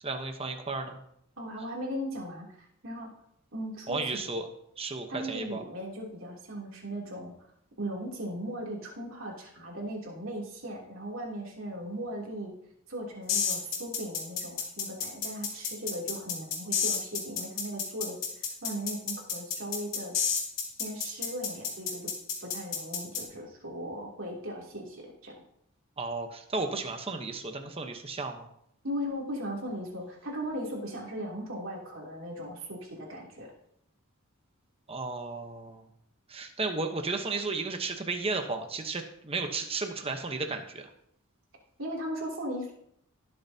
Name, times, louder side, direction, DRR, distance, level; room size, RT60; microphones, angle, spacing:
voice 1, 0.0-1.0 3.9-4.5 4.8-5.6 26.0-28.5 34.9-35.9 36.3-40.9, right 3 dB, 25° right, 5 dB, 1.0 m, -34 dB
voice 2, 1.4-3.1 3.5-4.2 5.1-7.3 7.8-12.6 12.9-20.2 20.8-22.1 22.4-25.3 28.8-33.5 41.8-42.7, equal, 65° right, -3 dB, 3.0 m, -38 dB
sound 1, 13.3-23.2, left 6 dB, 60° left, 2.7 m, -31 dB
20.0 x 7.0 x 2.8 m, 0.73 s
head